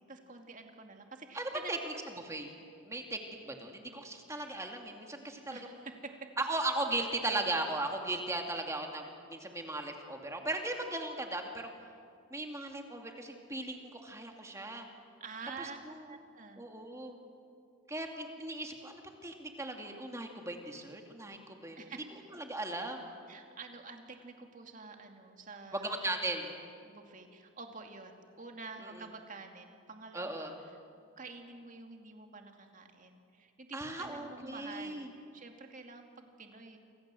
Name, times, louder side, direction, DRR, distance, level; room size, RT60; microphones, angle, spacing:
voice 1, 0.0-2.1 5.5-6.3 15.2-15.8 16.0-16.6 21.8-22.3 23.3-26.0 26.8-30.8 31.2-36.8, right 4 dB, 35° right, 4 dB, 2.4 m, -48 dB
voice 2, 1.3-1.8 2.3-2.5 2.8-5.7 6.4-11.7 12.3-14.9 15.6-16.0 16.6-17.2 17.9-21.8 22.3-23.1 25.7-26.5 30.1-30.5 33.7-35.1, right 2 dB, 15° right, 3 dB, 2.4 m, -37 dB
28.0 x 25.0 x 7.7 m, 2.3 s
head